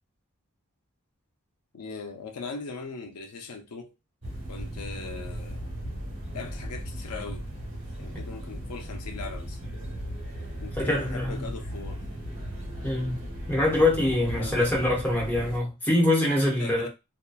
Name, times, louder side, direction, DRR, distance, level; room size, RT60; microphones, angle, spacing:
voice 1, 1.7-3.9 4.5-5.6 6.3-7.5 8.0-9.6 10.6-12.0 14.4-14.7 16.5-16.9, left 4 dB, 85° left, 0.5 m, -40 dB
sound 1, 4.2-15.6, equal, 55° right, 1.1 m, -37 dB
voice 2, 10.8-11.4 12.8-13.2 13.5-16.9, left 1 dB, 10° left, 1.0 m, -24 dB
2.8 x 2.2 x 2.3 m
head